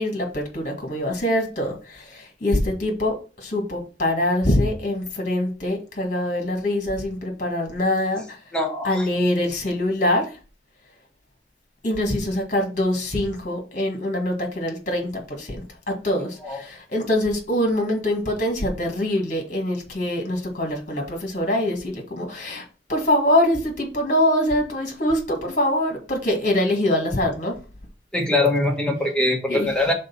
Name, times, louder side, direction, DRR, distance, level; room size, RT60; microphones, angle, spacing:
voice 1, 0.0-3.2 3.4-8.4 8.8-10.3 11.8-15.6 16.0-22.6 22.9-27.5 29.5-29.7, left 1 dB, 45° left, 3 dB, 1.7 m, -24 dB
voice 2, 8.5-9.1 16.2-16.6 28.1-29.9, left 2 dB, 5° left, -1 dB, 1.4 m, -23 dB
5.2 x 3.9 x 5.6 m, 0.34 s
head